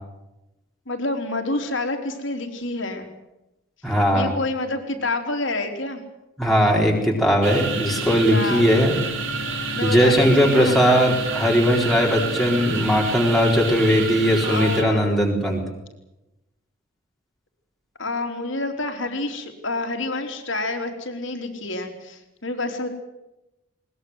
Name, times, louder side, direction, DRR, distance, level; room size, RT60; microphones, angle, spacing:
voice 1, 0.9-3.1 4.1-6.0 8.1-9.0 9.7-10.8 14.4-15.2 18.0-22.9, left 2 dB, 60° left, 5 dB, 3.7 m, -28 dB
voice 2, 3.8-4.3 6.4-9.0 9.8-15.6, equal, ahead, -2 dB, 4.0 m, -19 dB
sound 1, 7.4-14.8, right 3 dB, 65° right, 3.7 m, -28 dB
21.0 x 20.5 x 8.0 m, 0.94 s
head